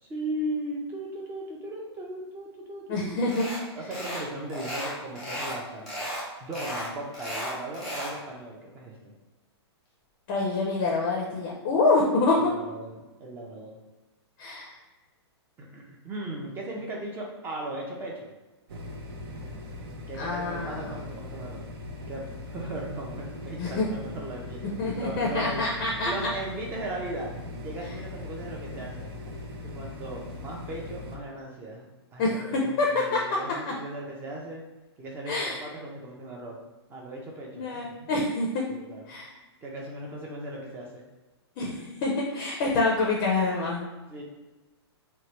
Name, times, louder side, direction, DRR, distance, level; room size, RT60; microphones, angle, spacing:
voice 1, 0.0-3.1 3.8-6.1 6.4-9.1 12.4-13.8 15.6-18.3 20.1-21.6 22.1-25.6 26.0-27.3 27.6-29.1 29.7-34.6 35.0-36.6 36.9-38.1 38.7-39.2 39.6-41.0 44.1-44.2, right 1 dB, 15° right, -1 dB, 0.5 m, -37 dB
voice 2, 2.9-3.5 10.3-12.5 14.4-14.8 20.2-20.9 23.6-23.9 24.8-26.3 32.2-32.9 33.1-33.2 33.7-33.8 35.3-35.6 37.5-38.6 39.1-39.3 41.6-43.8, left 3 dB, 35° left, -2 dB, 0.5 m, -26 dB
sound 1, 3.3-3.6 3.9-4.2 4.5-5.6 5.9-6.2 6.5-8.2, equal, ahead, 1.0 m, -34 dB
sound 2, 18.7-31.2, left 2 dB, 60° right, 0.6 m, -40 dB
3.0 x 2.2 x 2.9 m, 1.1 s
hypercardioid pair, 150°, 14 cm